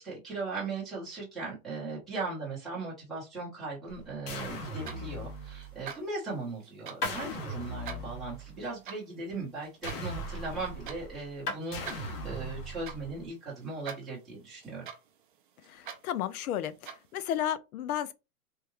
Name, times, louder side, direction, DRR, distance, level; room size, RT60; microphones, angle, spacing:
voice 1, 0.0-14.9, right 3 dB, ahead, 0.9 m, -38 dB
sound 1, 3.9-5.9 7.0-8.6 9.8-11.3 11.7-13.3, equal, 40° left, 0.9 m, -40 dB
sound 2, 4.6-17.4, right 7 dB, 35° right, 0.4 m, -48 dB
sound 3, 7.0-7.2 9.2-10.5 11.1-11.2 11.5-11.7, left 3 dB, 85° left, 2.1 m, -38 dB
voice 2, 15.7-16.7 17.1-18.1, left 11 dB, 70° left, 0.6 m, -32 dB
3.5 x 2.2 x 3.1 m
supercardioid pair, 170°, 45 cm